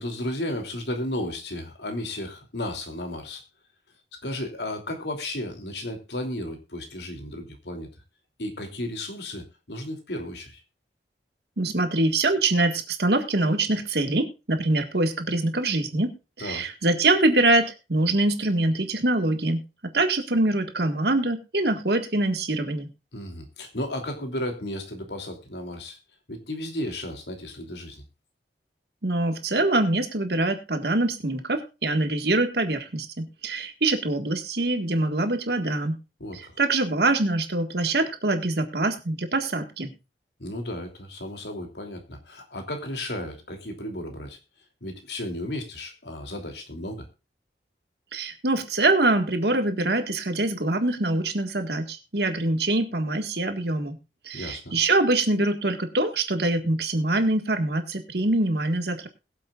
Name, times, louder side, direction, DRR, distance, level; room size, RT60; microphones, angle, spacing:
voice 1, 0.0-3.4 4.2-7.9 8.4-10.6 16.4-16.7 23.1-26.0 26.3-28.0 36.2-36.6 40.4-44.4 44.8-47.1 54.3-54.7, left 1 dB, 80° left, 4 dB, 3.0 m, -34 dB
voice 2, 11.6-16.1 16.4-19.6 19.9-22.9 29.0-36.0 36.3-39.9 48.1-54.0 54.3-59.1, right 2 dB, 70° right, 7 dB, 1.8 m, -24 dB
21.5 x 7.6 x 2.5 m, 0.29 s
head